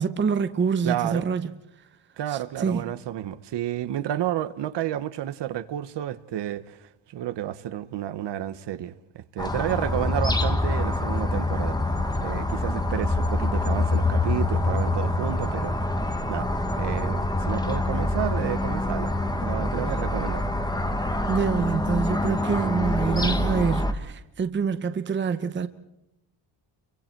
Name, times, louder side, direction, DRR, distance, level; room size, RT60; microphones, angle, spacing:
voice 1, 0.0-1.5 2.3-2.8 21.3-25.7, right 6 dB, 25° right, 0.8 m, -26 dB
voice 2, 0.8-1.3 2.2-11.8 12.2-15.8 16.3-16.5 16.7-19.1 19.4-20.5, right 12 dB, 60° right, 1.1 m, -31 dB
sound 1, 9.4-23.9, left 2 dB, 10° left, 1.3 m, -25 dB
29.5 x 24.0 x 4.6 m
cardioid pair, 165°, 48 cm